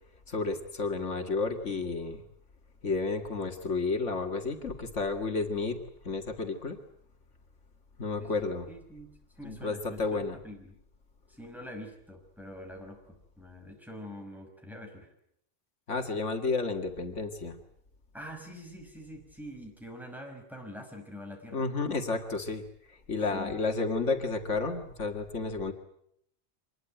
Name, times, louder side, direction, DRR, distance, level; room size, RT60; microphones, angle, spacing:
voice 1, 0.3-2.2 2.8-6.8 8.0-8.7 9.4-10.4 15.9-17.6 21.5-25.7, left 3 dB, 75° left, 4 dB, 2.3 m, -31 dB
voice 2, 8.2-10.8 11.3-15.1 18.1-21.6 23.3-23.5, equal, ahead, 2 dB, 5.8 m, -45 dB
25.5 x 21.5 x 9.1 m, 0.73 s
omnidirectional pair, 1.3 m